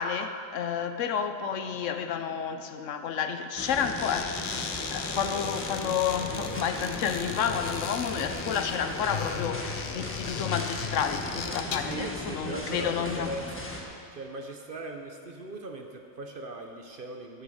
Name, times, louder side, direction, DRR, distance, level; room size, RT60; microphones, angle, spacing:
voice 1, 0.0-13.3, left 7 dB, 70° left, 8 dB, 1.0 m, -31 dB
sound 1, 3.6-13.8, left 1 dB, 10° left, 1.2 m, -37 dB
sound 2, 3.8-12.1, left 6 dB, 50° left, 0.6 m, -37 dB
voice 2, 11.8-13.7 14.1-17.4, right 2 dB, 50° right, 3 dB, 0.9 m, -39 dB
13.0 x 7.0 x 6.3 m, 2.3 s
omnidirectional pair, 1.4 m